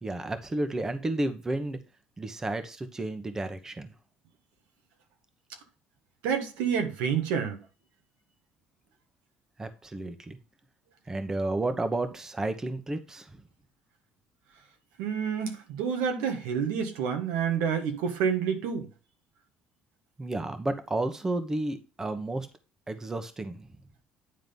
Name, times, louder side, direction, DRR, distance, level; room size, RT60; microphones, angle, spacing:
voice 1, 0.0-1.8 2.2-3.9 9.6-10.4 11.1-13.4 20.2-22.5 22.9-23.7, right 2 dB, 15° right, 1.1 m, -32 dB
voice 2, 6.2-7.6 15.0-18.9, right 7 dB, 90° right, 1.6 m, -28 dB
9.6 x 3.9 x 5.3 m
cardioid pair, 110°, 3 cm